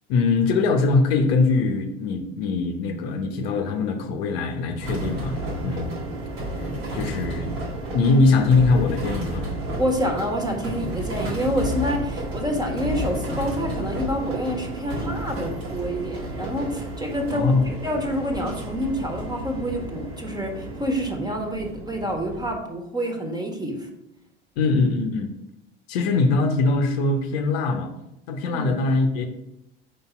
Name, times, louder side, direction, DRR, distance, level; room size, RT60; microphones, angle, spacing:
voice 1, 0.1-5.4 5.6-6.0 6.9-7.5 7.9-9.5 17.3-17.7 24.6-25.3 25.9-27.9 28.3-29.3, left 3 dB, 75° left, 6 dB, 0.8 m, -22 dB
sound 1, 4.8-22.5, right 1 dB, 80° right, 2.0 m, -32 dB
voice 2, 9.8-17.5 17.8-23.9 28.5-28.7, equal, 15° right, 2 dB, 1.4 m, -27 dB
5.2 x 4.1 x 4.4 m, 0.84 s
hypercardioid pair, 70°, 31 cm